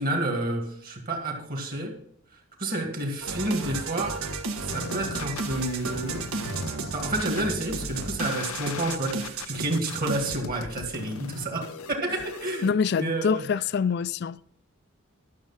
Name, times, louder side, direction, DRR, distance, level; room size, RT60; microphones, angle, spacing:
voice 1, 0.0-2.0 2.6-4.2 4.6-6.2 6.7-13.4, right 1 dB, 45° right, 2.0 m, -30 dB
sound 1, 3.2-10.4, right 4 dB, 85° right, 1.5 m, -33 dB
sound 2, 4.7-12.7, left 5 dB, 85° left, 0.7 m, -39 dB
voice 2, 12.6-14.4, left 6 dB, 50° left, 0.3 m, -25 dB
12.0 x 6.5 x 5.7 m
head